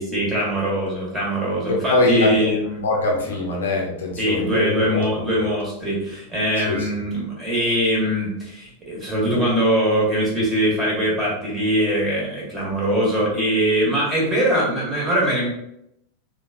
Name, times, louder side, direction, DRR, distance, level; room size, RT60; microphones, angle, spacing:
voice 1, 0.0-2.8 4.2-15.5, equal, 15° right, -5 dB, 1.4 m, -22 dB
voice 2, 1.7-2.5 2.8-5.0 5.4-5.5 6.6-6.9, left 2 dB, 65° left, -1 dB, 0.6 m, -23 dB
3.8 x 2.3 x 2.7 m, 0.78 s
figure-of-eight pair, 90°, 0 cm